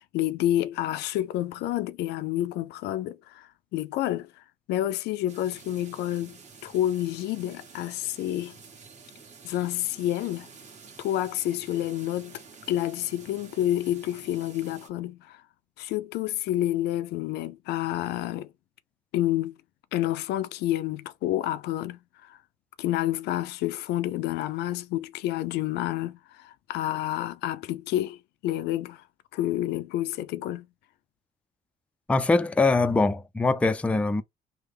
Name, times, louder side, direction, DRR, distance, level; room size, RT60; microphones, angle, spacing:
voice 1, 0.1-4.3 4.7-8.5 9.4-10.5 11.0-12.4 12.7-15.4 15.8-18.5 19.1-19.5 19.9-22.4 22.8-29.0 29.3-30.7, left 13 dB, 80° left, 0.4 m, -29 dB
sound 1, 5.3-14.9, right 5 dB, 45° right, 1.4 m, -50 dB
voice 2, 32.1-34.2, left 3 dB, 5° left, 0.3 m, -23 dB
3.3 x 2.1 x 3.3 m
cardioid pair, 110°, 17 cm